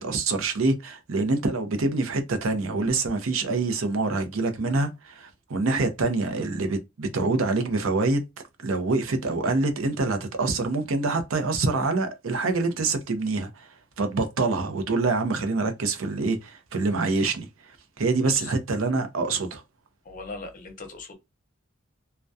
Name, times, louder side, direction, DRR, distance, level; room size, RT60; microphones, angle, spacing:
voice 1, 0.0-8.3 8.6-19.6, right 3 dB, 80° right, 0.6 m, -26 dB
voice 2, 20.0-21.1, left 3 dB, 40° left, 0.7 m, -39 dB
2.2 x 2.2 x 2.5 m
head